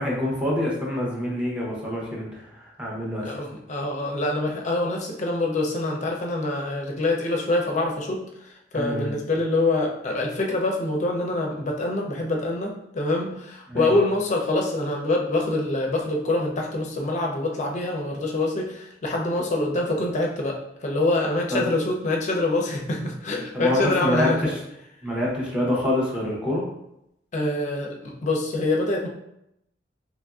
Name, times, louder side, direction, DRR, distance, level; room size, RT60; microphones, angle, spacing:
voice 1, 0.0-3.3 8.7-9.1 13.7-13.9 21.5-21.7 23.5-24.5 25.0-26.6, left 1 dB, 5° right, -5 dB, 0.7 m, -26 dB
voice 2, 3.2-24.4 27.3-29.1, left 2 dB, 40° left, 0 dB, 0.5 m, -25 dB
2.9 x 2.5 x 2.3 m, 0.81 s
head